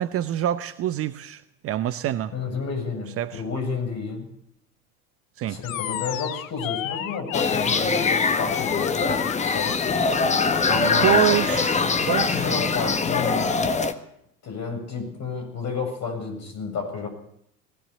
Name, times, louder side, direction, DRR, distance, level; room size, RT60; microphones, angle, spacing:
voice 1, 0.0-2.3 3.2-3.4 5.4-5.6 11.0-11.8 12.1-12.5, right 12 dB, 30° right, 13 dB, 0.8 m, -25 dB
voice 2, 2.3-4.3 5.4-9.8 10.7-11.3 12.3-13.5 14.4-17.1, left 4 dB, 35° left, 4 dB, 7.8 m, -31 dB
Animal, 5.6-13.6, left 12 dB, 55° left, 1.3 m, -32 dB
sound 1, 7.3-13.9, left 4 dB, 15° left, 1.5 m, -23 dB
20.0 x 17.0 x 8.4 m, 0.72 s
figure-of-eight pair, 75°, 47 cm